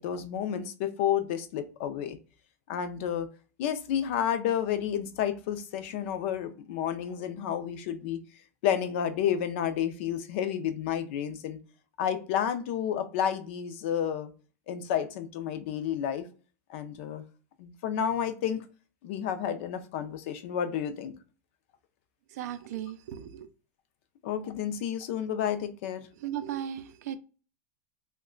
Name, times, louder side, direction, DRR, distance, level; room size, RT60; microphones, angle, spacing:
voice 1, 0.0-2.2 2.7-3.3 3.6-8.2 8.6-11.6 12.0-14.3 14.7-16.3 16.7-17.2 17.6-18.6 19.0-21.1 24.2-26.1, left 9 dB, 45° left, 0.4 m, -30 dB
voice 2, 22.3-23.5 26.2-27.2, right 10 dB, 70° right, 0.4 m, -36 dB
3.0 x 2.2 x 3.6 m
supercardioid pair, 180°, 9 cm